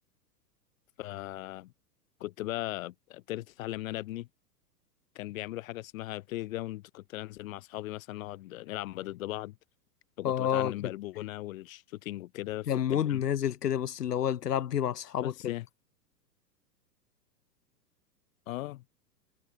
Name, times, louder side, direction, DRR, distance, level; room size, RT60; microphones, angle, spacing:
voice 1, 1.0-1.7 2.2-4.3 5.1-9.6 10.2-13.2 15.2-15.6 18.5-18.8, left 16 dB, 55° left, 2.7 m, -38 dB
voice 2, 10.2-10.9 12.7-15.5, left 10 dB, 70° left, 1.9 m, -29 dB
figure-of-eight pair, 100°, 49 cm